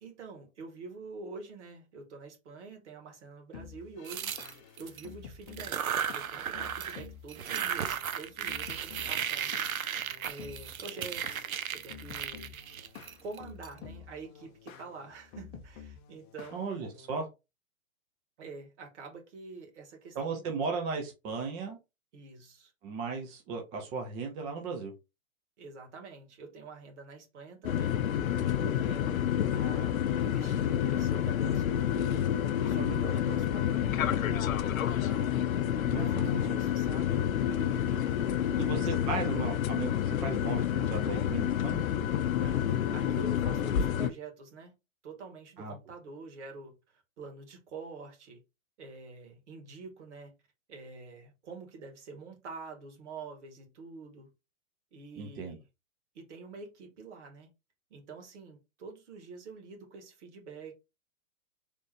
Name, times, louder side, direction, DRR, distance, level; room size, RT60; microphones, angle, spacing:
voice 1, 0.0-4.4 4.8-9.5 10.2-11.5 11.7-12.5 13.2-16.7 18.4-20.5 22.1-22.7 25.6-32.1 32.7-34.5 34.8-35.5 35.9-37.2 37.5-38.3 38.5-39.3 42.4-44.7 45.0-48.4 48.8-50.3 50.7-54.3 54.9-55.6 56.1-57.5 57.9-60.7, right 4 dB, 55° right, 2.0 m, -46 dB
sound 1, 3.5-17.2, left 7 dB, 25° left, 0.7 m, -50 dB
sound 2, 4.0-5.0 5.5-7.0 7.3-13.7, right 8 dB, 90° right, 0.6 m, -35 dB
voice 2, 16.5-17.3 20.2-21.8 22.8-24.9 32.8-33.0 35.8-36.6 38.6-41.8 45.6-45.7 55.2-55.6, right 4 dB, 10° right, 0.4 m, -36 dB
sound 3, 27.6-44.1, left 10 dB, 80° left, 0.6 m, -29 dB
3.7 x 3.4 x 3.1 m
hypercardioid pair, 125°, 41 cm